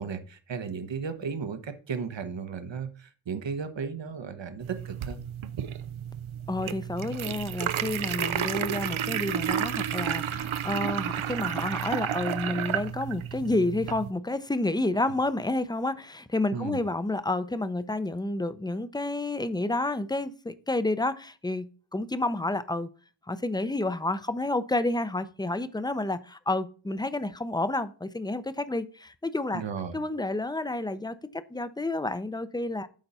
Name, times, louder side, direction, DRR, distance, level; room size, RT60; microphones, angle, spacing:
voice 1, 0.0-5.2 16.5-16.8 29.5-30.0, right 6 dB, 70° right, 1.1 m, -35 dB
sound 1, 4.6-14.1, right 9 dB, 85° right, 0.6 m, -31 dB
voice 2, 6.5-21.7 21.9-22.9 23.3-29.6 29.9-32.9, left 2 dB, 10° left, 0.5 m, -30 dB
9.0 x 4.0 x 5.5 m
wide cardioid pair, 80°, 46 cm